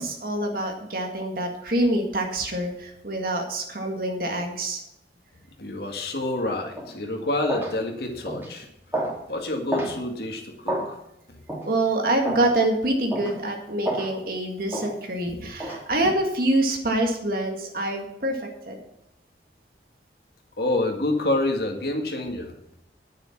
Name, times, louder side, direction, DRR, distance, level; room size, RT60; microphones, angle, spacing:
voice 1, 0.0-4.8 11.7-18.8, right 1 dB, 55° right, 2 dB, 1.9 m, -26 dB
voice 2, 5.6-8.7 9.3-11.0 11.3-11.4 20.6-22.5, left 2 dB, 60° left, 3 dB, 1.9 m, -28 dB
sound 1, 6.8-6.9 7.5-7.7 8.3-8.5 8.9-9.2 9.7-9.9 10.7-10.9 11.5-11.7 12.2-12.5 13.1-13.3 13.8-14.1 14.7-14.9 15.6-15.8, right 1 dB, 10° right, 3.0 m, -29 dB
9.8 x 9.6 x 5.9 m, 0.80 s
head